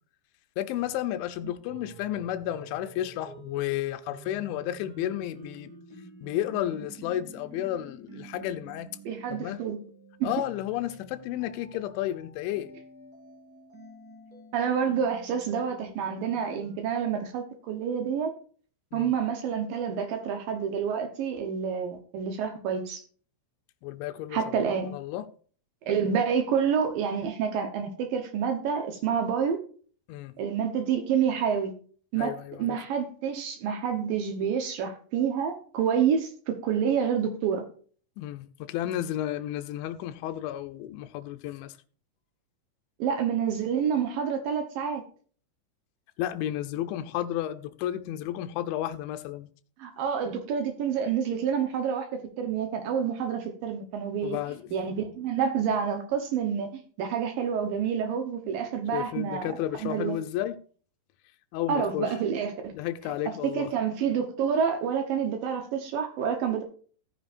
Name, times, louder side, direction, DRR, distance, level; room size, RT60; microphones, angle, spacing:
voice 1, 0.6-5.7 6.2-8.9 9.3-9.6 10.2-12.7 18.9-19.1 23.8-24.4 24.9-25.2 30.1-30.3 32.2-32.8 38.2-41.7 46.2-49.5 54.2-54.8 58.9-60.6 61.5-62.1 62.8-63.7, left 12 dB, 80° left, 2.9 m, -32 dB
sound 1, 0.7-16.8, right 2 dB, 20° right, 3.6 m, -49 dB
voice 2, 9.1-9.8 10.2-10.3 14.5-18.3 18.9-23.0 24.3-25.0 25.8-29.6 30.4-31.7 32.1-32.3 32.6-37.6 43.0-45.0 49.8-54.4 54.7-59.5 59.8-60.2 61.7-62.7 63.4-66.6, right 7 dB, 80° right, 2.0 m, -28 dB
15.0 x 9.5 x 2.6 m
omnidirectional pair, 5.7 m